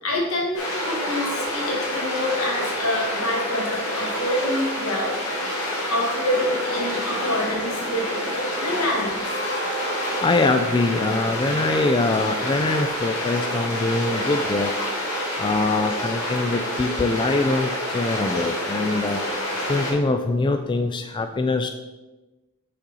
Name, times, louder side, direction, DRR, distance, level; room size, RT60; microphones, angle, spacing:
voice 1, 0.0-5.2 5.9-8.1 8.6-9.2, left 1 dB, 85° left, -1 dB, 1.9 m, -26 dB
sound 1, 0.5-19.9, equal, 70° left, 2.0 m, -27 dB
voice 2, 10.2-14.7 15.4-19.2 19.7-21.7, left 2 dB, 20° left, 7 dB, 0.3 m, -23 dB
6.5 x 5.5 x 4.1 m, 1.1 s
head